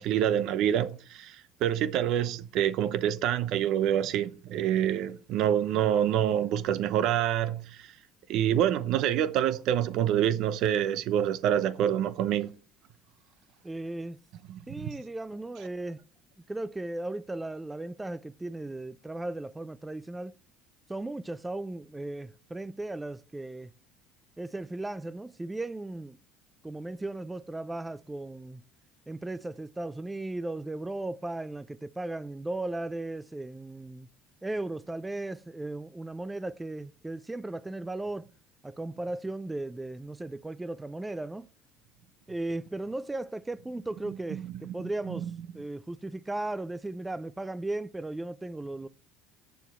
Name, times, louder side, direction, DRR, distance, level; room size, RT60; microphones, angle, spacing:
voice 1, 0.0-7.9 8.3-12.5 14.5-14.9 44.3-44.7 45.1-45.3, right 10 dB, 65° right, 0.8 m, -27 dB
voice 2, 13.6-14.2 14.7-16.0 16.5-20.4 20.9-23.7 24.4-26.2 26.6-28.6 29.1-34.1 34.4-38.3 38.6-41.5 42.3-48.9, right 2 dB, 10° right, 0.4 m, -36 dB
8.2 x 6.9 x 4.3 m
hypercardioid pair, 80°, 0 cm